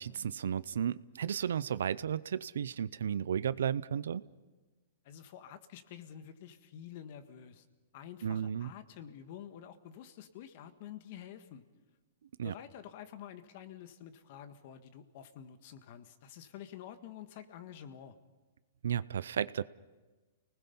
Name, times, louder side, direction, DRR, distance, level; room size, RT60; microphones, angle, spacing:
voice 1, 0.0-4.2 8.2-8.7 12.4-12.5 18.8-19.6, right 8 dB, 80° right, 18 dB, 0.6 m, -33 dB
voice 2, 5.0-7.6 7.9-11.6 12.4-18.1, left 9 dB, 50° left, 10 dB, 1.6 m, -49 dB
29.5 x 19.5 x 5.6 m, 1.3 s
hypercardioid pair, 145°, 0 cm